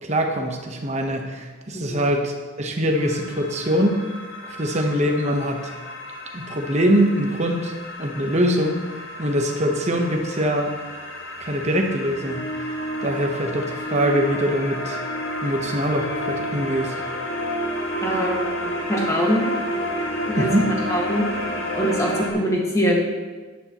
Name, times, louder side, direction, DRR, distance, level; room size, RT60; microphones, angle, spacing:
voice 1, 0.0-4.0 4.4-5.7 6.3-7.7 8.0-8.8 9.2-10.7 11.4-12.8 13.0-15.0 15.4-17.0 20.4-20.7, equal, 30° right, 3 dB, 1.0 m, -23 dB
sound 1, 2.9-22.3, equal, 75° left, 1.5 m, -30 dB
voice 2, 18.0-18.4 18.6-19.4 20.3-20.5 20.9-21.2 21.7-23.0, equal, 15° left, -2 dB, 1.7 m, -23 dB
11.0 x 10.5 x 3.1 m, 1.4 s
head